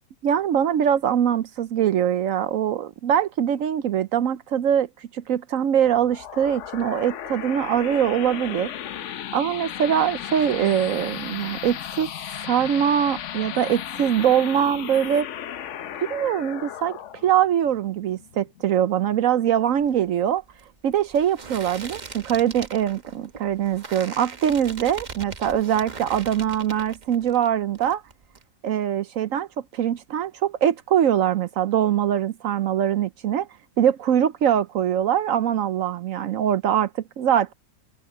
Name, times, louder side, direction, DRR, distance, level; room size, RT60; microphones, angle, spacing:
voice 1, 0.2-4.9 5.1-8.7 9.3-12.1 12.4-15.3 16.1-17.0 17.2-20.4 20.8-28.0 28.6-29.5 29.7-33.5 33.8-36.9 37.2-37.5, right 9 dB, 65° right, 0.8 m, -22 dB
sound 1, 5.8-18.9, left 10 dB, 60° left, 0.8 m, -35 dB
sound 2, 19.7-27.5 27.7-28.4, right 4 dB, 30° right, 0.9 m, -40 dB
omnidirectional pair, 1.9 m